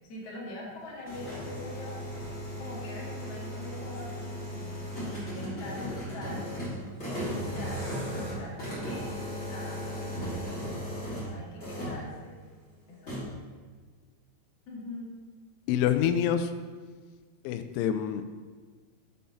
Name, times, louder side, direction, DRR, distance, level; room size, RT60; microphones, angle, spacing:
voice 1, 0.1-2.0 2.6-6.5 7.0-9.1 9.5-10.2 11.1-12.4 12.9-13.2 14.7-15.1, left 1 dB, 45° left, -5 dB, 2.2 m, -43 dB
sound 1, 0.8-11.3 11.6-12.0 13.1-13.2, equal, 20° left, 2.3 m, -36 dB
voice 2, 15.7-16.5 17.5-18.2, left 9 dB, 90° left, 9 dB, 2.9 m, -26 dB
7.5 x 5.7 x 5.4 m, 1.5 s
omnidirectional pair, 5.3 m